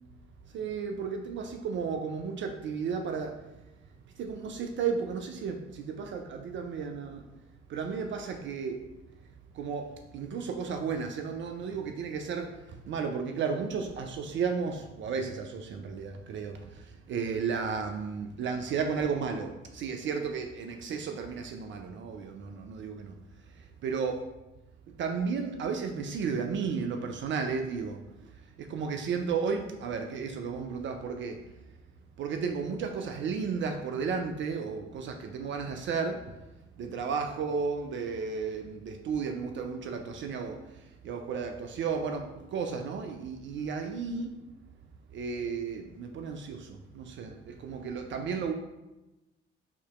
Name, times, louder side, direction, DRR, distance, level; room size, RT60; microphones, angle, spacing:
voice 1, 0.5-3.4 4.2-7.2 7.7-8.8 9.5-23.2 23.5-24.2 24.9-28.0 28.6-31.4 32.2-36.3 36.8-44.3 45.1-48.5, right 5 dB, 40° right, 5 dB, 0.4 m, -33 dB
4.6 x 2.8 x 2.3 m, 1.0 s
figure-of-eight pair, 45°, 31 cm